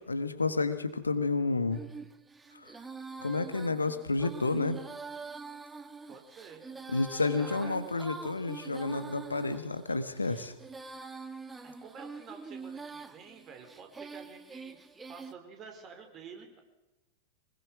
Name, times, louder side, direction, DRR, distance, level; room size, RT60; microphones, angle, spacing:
voice 1, 0.1-1.8 2.5-2.7 3.2-4.8 6.9-10.5, left 3 dB, 80° left, 10 dB, 1.6 m, -30 dB
Female singing, 1.7-15.3, right 4 dB, 10° right, 1.5 m, -45 dB
voice 2, 6.1-6.6 7.3-7.8 11.6-16.6, right 5 dB, 30° right, 4 dB, 4.9 m, -50 dB
24.5 x 20.5 x 6.2 m, 1.0 s
figure-of-eight pair, 90°, 0 cm